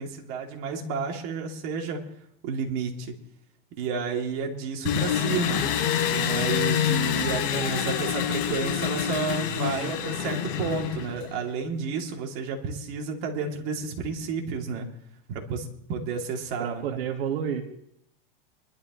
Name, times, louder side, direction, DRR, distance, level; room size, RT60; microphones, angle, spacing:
voice 1, 0.0-2.0 2.4-3.1 3.8-5.6 6.1-14.9 15.3-17.0, right 5 dB, 50° right, 1 dB, 2.9 m, -31 dB
Engine, 4.9-11.4, left 9 dB, 65° left, 5.1 m, -27 dB
voice 2, 16.6-17.6, right 8 dB, 80° right, 4 dB, 1.8 m, -30 dB
24.0 x 12.0 x 3.1 m, 0.74 s
supercardioid pair, 130°, 29 cm